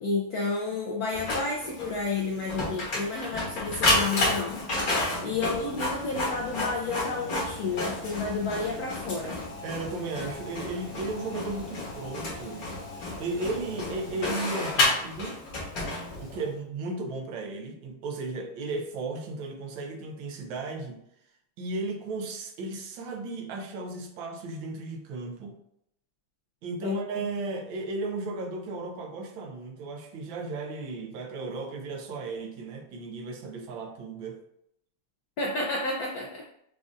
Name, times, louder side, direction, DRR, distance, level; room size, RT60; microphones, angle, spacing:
voice 1, 0.0-4.6 5.2-9.4 26.8-27.0 35.4-36.4, left 3 dB, 75° left, -2 dB, 0.8 m, -31 dB
Printer, 1.1-16.5, left 2 dB, 50° left, 1.4 m, -31 dB
voice 2, 9.6-12.7 13.2-15.4 16.2-21.0 21.6-25.6 26.6-34.4, right 3 dB, 80° right, 4 dB, 1.4 m, -35 dB
5.1 x 2.5 x 2.5 m, 0.75 s
omnidirectional pair, 2.2 m